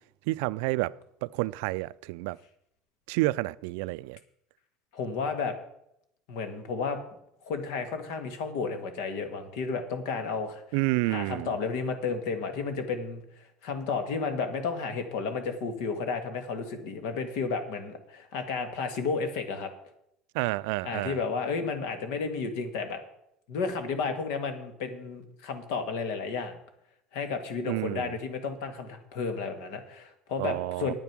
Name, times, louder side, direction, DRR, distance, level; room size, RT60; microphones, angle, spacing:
voice 1, 0.3-0.9 1.2-2.4 3.1-4.2 10.7-11.5 20.3-21.2 27.7-28.1 30.4-30.9, right 21 dB, 85° right, 0.3 m, -29 dB
voice 2, 4.9-5.5 6.3-7.0 7.4-10.6 11.0-19.7 20.8-23.0 23.5-26.6 27.1-30.9, left 4 dB, 80° left, 1.7 m, -32 dB
9.2 x 9.0 x 6.0 m
supercardioid pair, 105°, 0 cm